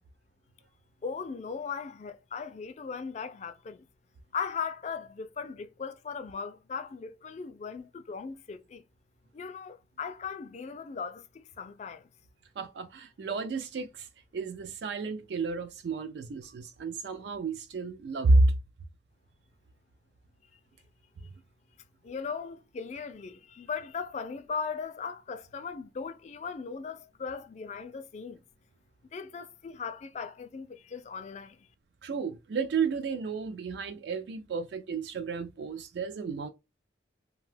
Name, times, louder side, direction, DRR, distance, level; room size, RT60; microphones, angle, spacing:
voice 1, 1.0-3.8 4.3-8.8 9.3-12.1 22.0-28.4 29.1-31.6, left 5 dB, 40° left, 0.3 m, -38 dB
voice 2, 12.6-14.1 14.3-18.5 32.0-36.5, right 3 dB, 70° right, 0.3 m, -30 dB
2.6 x 2.2 x 3.2 m
head